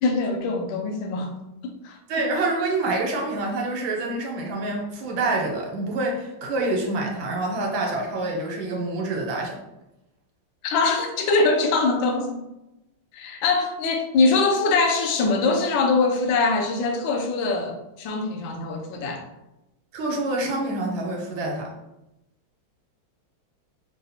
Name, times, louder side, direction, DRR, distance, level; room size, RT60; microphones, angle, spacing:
voice 1, 0.0-1.3 1.6-2.0 10.6-12.4 13.1-19.2, left 3 dB, 75° left, 3 dB, 1.3 m, -23 dB
voice 2, 2.1-9.6 19.9-21.7, right 2 dB, 70° right, 1 dB, 1.5 m, -27 dB
5.2 x 2.4 x 2.8 m, 0.92 s
omnidirectional pair, 2.3 m